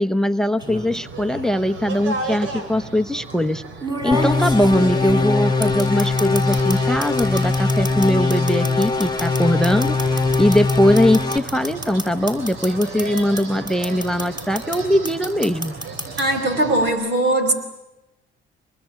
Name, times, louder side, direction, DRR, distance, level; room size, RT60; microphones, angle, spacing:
voice 1, 0.0-3.6 4.0-10.1 10.4-15.8, left 1 dB, 5° left, 11 dB, 0.9 m, -20 dB
sound 1, 0.6-1.0 2.2-2.3 3.8-6.8 7.0-13.4 13.7-14.8 15.0-16.2, right 1 dB, 20° right, 6.5 m, -29 dB
sound 2, 0.6-16.9, right 3 dB, 80° right, 3.3 m, -35 dB
sound 3, 4.1-11.4, left 3 dB, 20° left, 1.3 m, -21 dB
voice 2, 16.2-17.5, right 1 dB, 60° right, 7 dB, 4.9 m, -20 dB
24.5 x 21.5 x 9.9 m, 0.98 s
cardioid pair, 90°, 20 cm